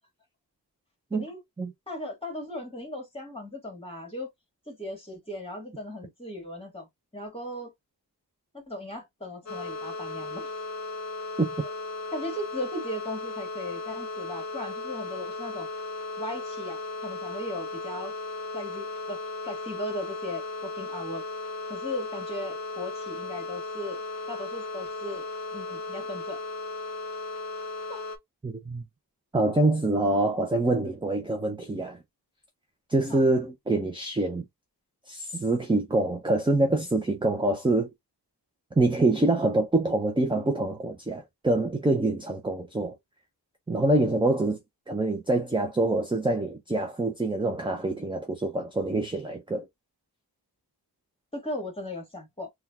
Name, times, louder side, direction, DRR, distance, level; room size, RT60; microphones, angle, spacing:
voice 1, 1.9-4.3 4.7-6.9 7.1-7.7 8.5-10.5 12.1-15.7 16.2-18.1 18.5-21.2 21.7-24.0 24.3-25.2 25.5-26.4 27.9-28.0 33.1-33.2 51.3-52.5, left 1 dB, 15° left, 1.8 m, -37 dB
sound 1, 9.5-28.2, left 3 dB, 40° left, 0.7 m, -36 dB
voice 2, 28.4-28.8 29.3-32.0 32.9-34.4 35.1-37.9 38.8-43.0 43.7-44.6 44.9-49.6, right 2 dB, 10° right, 0.5 m, -25 dB
3.6 x 2.3 x 2.7 m
wide cardioid pair, 120°, 40 cm